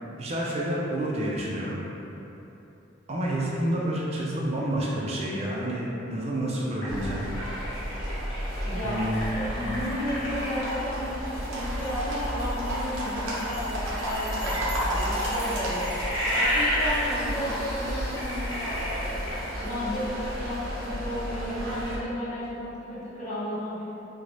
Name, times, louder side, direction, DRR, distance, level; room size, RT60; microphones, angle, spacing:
voice 1, 0.2-1.8 3.1-7.3 8.8-9.2, right 1 dB, 30° right, -4 dB, 0.4 m, -29 dB
sound 1, 6.8-10.9 13.7-19.8, equal, 80° left, 1.2 m, -31 dB
sound 2, 6.9-22.0, equal, 90° right, 0.7 m, -32 dB
voice 2, 8.6-23.8, equal, 35° left, -9 dB, 0.8 m, -33 dB
3.8 x 2.1 x 3.0 m, 3.0 s
head